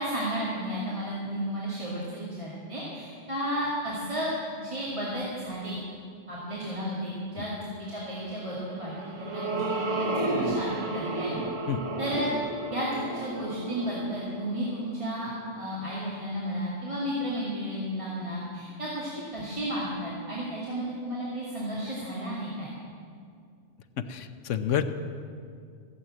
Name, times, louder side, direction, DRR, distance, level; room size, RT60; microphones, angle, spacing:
voice 1, 0.0-5.8 6.3-8.9 9.2-11.4 12.0-12.3 12.7-22.7, equal, 25° right, -8 dB, 2.5 m, -33 dB
sound 1, 8.6-15.2, right 2 dB, 90° right, 1.7 m, -32 dB
voice 2, 24.0-24.8, left 9 dB, 85° left, 10 dB, 1.1 m, -29 dB
16.0 x 7.8 x 9.0 m, 2.3 s
omnidirectional pair, 1.2 m